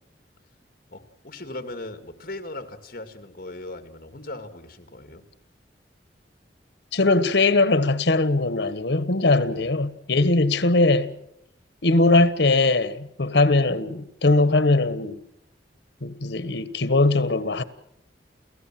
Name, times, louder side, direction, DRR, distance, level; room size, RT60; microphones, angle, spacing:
voice 1, 0.9-5.2 9.5-9.7 10.1-10.3, left 2 dB, 50° left, 2.2 m, -38 dB
voice 2, 6.9-11.1 11.8-15.2 16.0-17.6, left 2 dB, 75° left, 1.3 m, -20 dB
30.0 x 15.0 x 7.6 m
head